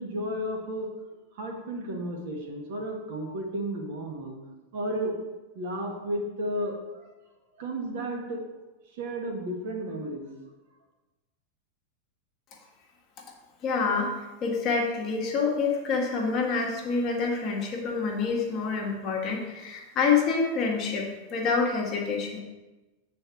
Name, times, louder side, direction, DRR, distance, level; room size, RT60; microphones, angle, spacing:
voice 1, 0.0-4.4 4.7-5.2 5.5-7.1 7.5-8.4 8.9-10.3, right 1 dB, 50° right, 1 dB, 1.6 m, -33 dB
voice 2, 13.6-14.1 14.4-22.4, left 5 dB, 35° left, -1 dB, 1.7 m, -27 dB
8.1 x 4.2 x 5.9 m, 1.1 s
figure-of-eight pair, 90°, 0 cm